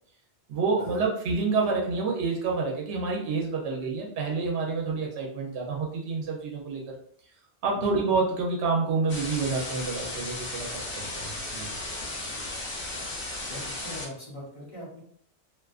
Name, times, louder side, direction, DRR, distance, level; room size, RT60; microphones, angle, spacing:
voice 1, 0.5-6.8 7.6-11.7, right 4 dB, 85° right, -1 dB, 0.9 m, -28 dB
sound 1, 9.1-14.0, left 2 dB, 60° left, 1.0 m, -35 dB
voice 2, 12.1-12.4 13.5-15.0, left 1 dB, 35° left, -6 dB, 0.9 m, -42 dB
2.5 x 2.3 x 2.3 m, 0.63 s
omnidirectional pair, 1.1 m